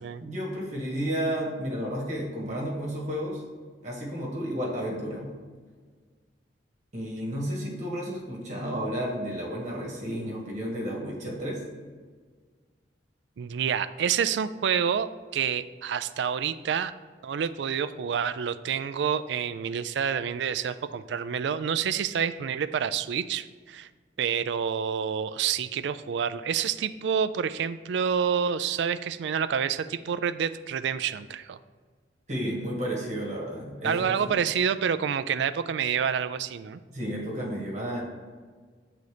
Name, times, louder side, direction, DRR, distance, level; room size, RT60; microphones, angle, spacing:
voice 1, 0.2-3.4 3.8-5.3 6.9-11.6 32.3-34.1 36.9-38.0, equal, 40° right, -2 dB, 1.7 m, -32 dB
voice 2, 13.4-16.9 17.2-23.9 24.2-31.6 33.8-36.8, right 7 dB, 70° right, 13 dB, 0.3 m, -28 dB
7.0 x 3.9 x 4.9 m, 1.5 s
head